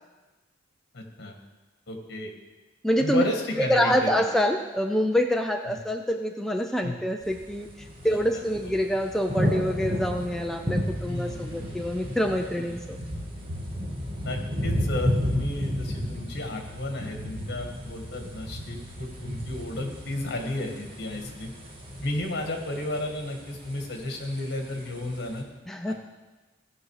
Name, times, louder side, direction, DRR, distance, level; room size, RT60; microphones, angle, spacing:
voice 1, 0.9-1.4 1.9-2.3 3.0-4.1 5.7-5.8 6.8-7.0 8.1-8.2 11.0-11.4 12.6-12.7 14.2-21.5 22.0-25.4 25.9-26.0, left 1 dB, 55° left, 3 dB, 1.7 m, -33 dB
voice 2, 2.8-3.2 3.6-7.7 8.0-13.0 25.7-25.9, equal, ahead, 3 dB, 0.4 m, -26 dB
sound 1, 7.2-25.4, equal, 25° right, 1.7 m, -33 dB
16.5 x 6.2 x 4.8 m, 1.2 s
head